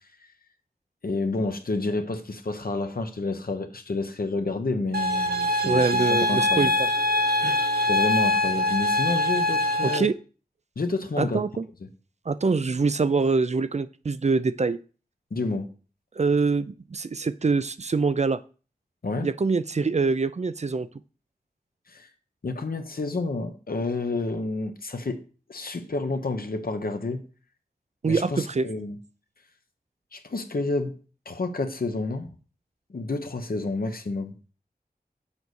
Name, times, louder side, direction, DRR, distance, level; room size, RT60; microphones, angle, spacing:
voice 1, 1.0-6.7 7.9-10.1 10.8-11.4 15.3-15.7 19.0-19.3 21.9-22.1 22.4-25.2 25.5-27.2 28.0-29.0 30.1-31.0 31.3-32.3 32.9-34.3, left 3 dB, 70° left, 1.1 m, -29 dB
sound 1, 4.9-10.0, left 1 dB, 85° right, 1.0 m, -23 dB
voice 2, 5.7-6.9 7.4-7.6 9.8-10.1 11.2-11.7 12.3-14.8 16.2-18.4 19.2-20.9 28.0-28.7, right 4 dB, 45° right, 0.4 m, -24 dB
7.2 x 4.1 x 6.4 m
wide cardioid pair, 65°, 16 cm